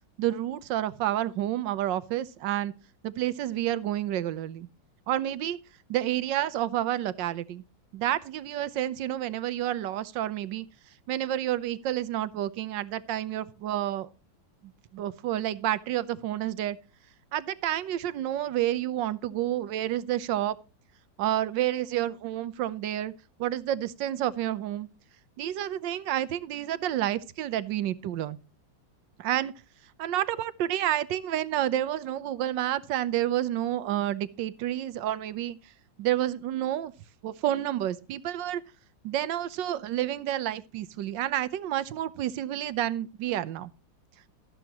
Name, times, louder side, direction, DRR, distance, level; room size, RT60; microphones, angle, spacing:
voice 1, 0.2-2.7 3.0-4.7 5.1-5.6 5.9-7.6 7.9-10.7 11.1-14.1 14.9-16.8 17.3-20.6 21.2-23.1 23.4-24.9 25.4-28.4 29.2-29.5 30.0-35.6 36.0-36.9 37.2-38.6 39.0-43.7, right 12 dB, 75° right, 1.5 m, -29 dB
13.5 x 11.0 x 3.0 m
omnidirectional pair, 2.0 m